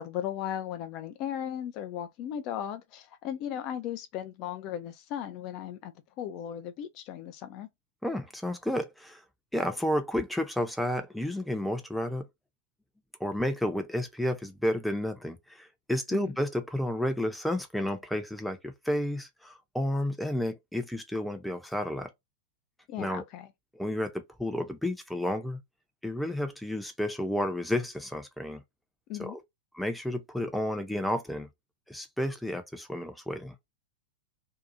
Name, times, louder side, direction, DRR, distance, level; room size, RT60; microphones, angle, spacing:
voice 1, 0.0-7.7 16.1-16.3 22.9-23.5 29.1-29.4, left 10 dB, 40° left, 0.4 m, -36 dB
voice 2, 8.0-9.2 9.5-12.3 13.2-22.1 23.0-23.2 23.7-25.6 26.0-28.6 29.2-29.4 29.7-31.5 31.9-33.5, left 1 dB, ahead, 0.6 m, -31 dB
2.7 x 2.3 x 2.5 m
figure-of-eight pair, 100°, 0 cm